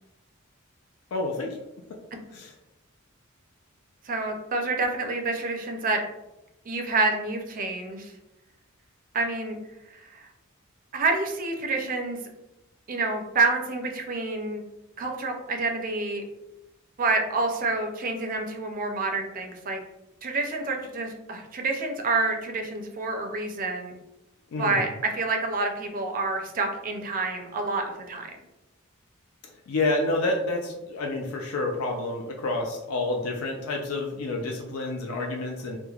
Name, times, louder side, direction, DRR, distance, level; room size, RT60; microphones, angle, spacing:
voice 1, 1.1-1.6 2.3-2.5 24.5-24.9 29.7-35.8, left 2 dB, 80° left, 1 dB, 0.4 m, -29 dB
voice 2, 4.1-6.0 6.7-8.1 9.1-9.6 9.9-10.3 10.9-12.2 12.9-14.6 15.0-16.2 17.0-19.8 20.2-24.0 24.6-28.4, right 3 dB, 40° right, 4 dB, 0.4 m, -28 dB
3.1 x 2.0 x 2.3 m, 0.94 s
head